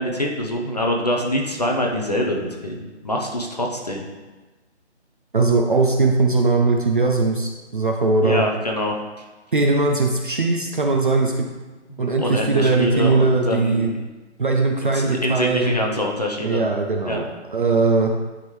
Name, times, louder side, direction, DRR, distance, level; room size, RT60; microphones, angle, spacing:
voice 1, 0.0-4.1 8.2-8.9 11.9-14.0 14.9-16.6 17.0-17.2, left 1 dB, 35° left, 0 dB, 0.7 m, -24 dB
voice 2, 5.3-8.4 9.5-11.5 12.0-13.9 14.4-15.7 16.4-18.1, right 3 dB, 45° right, 1 dB, 0.6 m, -20 dB
10.5 x 3.7 x 3.2 m, 1.2 s
hypercardioid pair, 175°, 35 cm